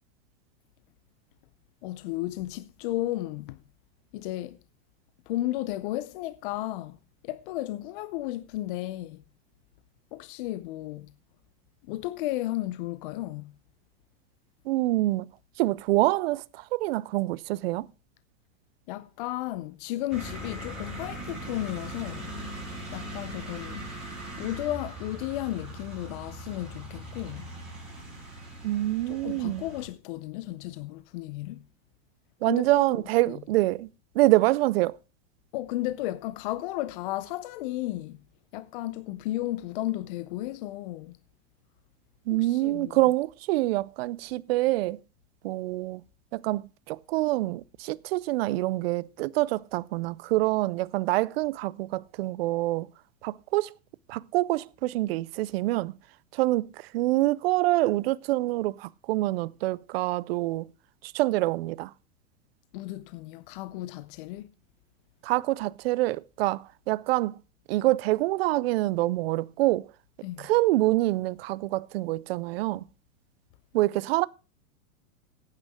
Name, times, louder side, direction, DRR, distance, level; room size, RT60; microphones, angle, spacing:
voice 1, 1.8-3.6 4.1-4.6 5.3-7.0 7.2-9.2 10.1-11.1 11.9-13.5 18.9-22.3 22.9-23.8 24.4-27.5 29.1-31.7 32.5-33.0 35.5-38.2 38.5-41.2 42.4-43.0 62.7-64.5 70.2-70.5, left 16 dB, 40° left, 0.5 m, -34 dB
voice 2, 14.7-15.3 15.6-17.9 28.6-29.6 32.4-33.9 34.1-35.0 42.3-45.0 45.4-46.0 46.3-52.9 53.2-53.7 54.1-56.0 56.3-60.7 61.0-61.9 65.2-67.4 67.7-69.9 70.4-72.9 73.7-74.3, right 18 dB, 50° right, 0.5 m, -26 dB
sound 1, 20.1-29.9, right 1 dB, ahead, 5.4 m, -40 dB
15.0 x 9.1 x 3.5 m
supercardioid pair, 145°, 41 cm